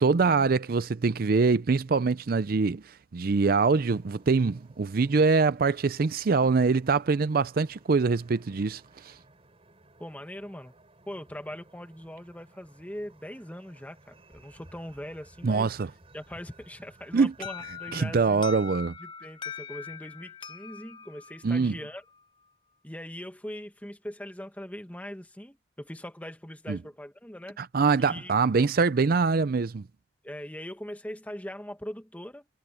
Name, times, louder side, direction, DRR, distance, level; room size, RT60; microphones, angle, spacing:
voice 1, 0.0-2.8 3.1-9.1 15.4-15.9 17.1-17.3 17.9-18.9 21.4-21.7 26.7-26.8 27.6-29.8, right 4 dB, 55° right, 0.5 m, -24 dB
sound 1, 3.4-18.3, right 2 dB, 35° right, 5.1 m, -57 dB
voice 2, 10.0-10.7 11.1-15.7 16.1-18.4 19.0-22.0 22.8-27.6 28.0-28.3 30.2-32.5, equal, 10° left, 1.5 m, -41 dB
Alarm, 17.4-22.2, left 6 dB, 25° left, 0.6 m, -42 dB
head